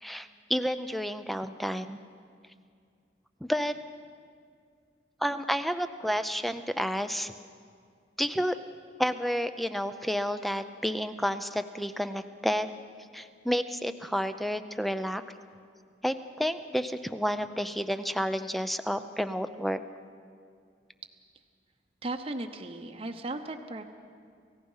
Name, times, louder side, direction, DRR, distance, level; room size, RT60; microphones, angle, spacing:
voice 1, 0.0-2.0 3.4-3.8 5.2-7.3 8.2-8.6 9.0-12.7 13.1-15.2 16.0-19.8, equal, ahead, 10 dB, 0.6 m, -30 dB
voice 2, 22.0-23.8, right 2 dB, 30° right, 5 dB, 0.9 m, -36 dB
29.0 x 16.0 x 5.6 m, 2.2 s
head